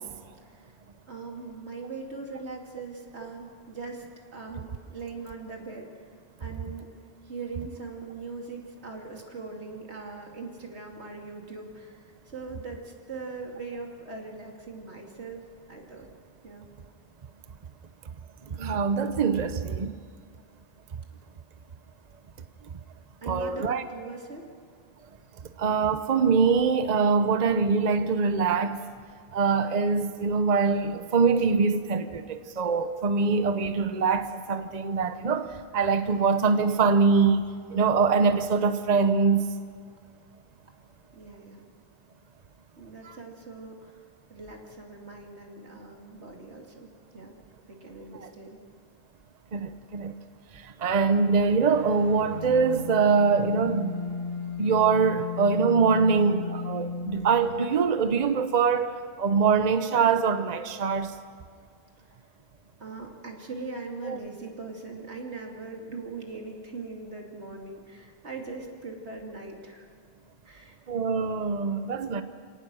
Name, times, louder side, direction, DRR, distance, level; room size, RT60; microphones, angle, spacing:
voice 1, 1.1-4.0 4.3-5.9 6.4-6.9 7.2-15.4 15.7-16.1 16.4-16.7 23.2-24.5 40.0-40.1 41.1-41.7 42.8-44.0 44.3-47.4 47.7-48.6 62.1-62.2 62.8-69.9 70.4-70.8, right 3 dB, 90° right, 3.0 m, -40 dB
voice 2, 18.5-19.9 23.3-23.8 25.6-28.8 29.3-39.5 43.0-43.2 48.2-48.3 49.5-50.2 50.5-54.1 54.6-61.1 64.0-64.2 70.9-72.2, right 5 dB, 40° right, 0.9 m, -24 dB
sound 1, 51.6-57.7, left 4 dB, 50° left, 8.1 m, -35 dB
28.0 x 18.0 x 6.3 m
omnidirectional pair, 1.1 m